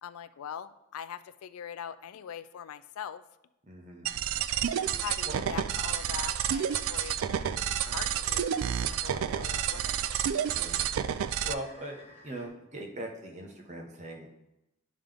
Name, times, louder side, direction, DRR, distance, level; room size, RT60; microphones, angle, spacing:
voice 1, 0.0-3.2 5.0-7.2 7.8-10.1, left 8 dB, 85° left, 13 dB, 0.3 m, -42 dB
voice 2, 3.7-4.1 5.2-5.3 10.4-10.8 11.4-14.3, right 1 dB, 35° right, 1 dB, 0.9 m, -40 dB
sound 1, 4.1-11.5, right 9 dB, 75° right, 0.3 m, -30 dB
sound 2, 4.7-12.5, left 3 dB, 35° left, 1.2 m, -55 dB
11.0 x 3.7 x 3.4 m, 0.89 s
head